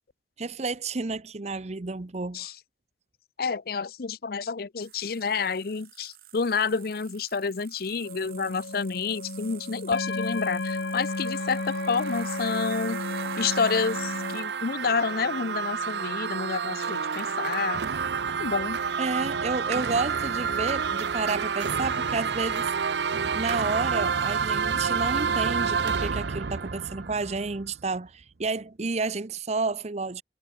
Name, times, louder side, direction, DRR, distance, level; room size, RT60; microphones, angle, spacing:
voice 1, 0.4-2.5 19.0-22.7 23.3-30.2, right 3 dB, 40° right, 0.7 m, -31 dB
voice 2, 3.4-13.0 13.4-17.8 18.4-18.8, left 5 dB, 55° left, 0.6 m, -29 dB
sound 1, 4.8-18.0, right 14 dB, 55° right, 4.7 m, -51 dB
sound 2, 8.0-14.4, left 2 dB, 75° left, 1.4 m, -33 dB
sound 3, 10.8-27.8, right 6 dB, 70° right, 0.7 m, -29 dB
head